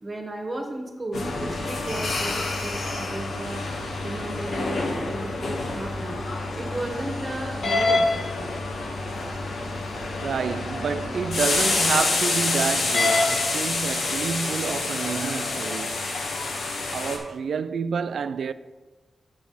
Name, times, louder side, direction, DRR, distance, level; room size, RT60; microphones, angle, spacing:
voice 1, 0.0-3.6 4.0-6.2 6.5-8.6, right 1 dB, 30° right, 1.3 m, -34 dB
sound 1, 1.1-17.2, left 3 dB, 85° left, 1.3 m, -27 dB
voice 2, 10.2-16.1 16.9-18.5, right 6 dB, 80° right, 0.3 m, -29 dB
7.2 x 5.9 x 5.6 m
wide cardioid pair, 120°, 0 cm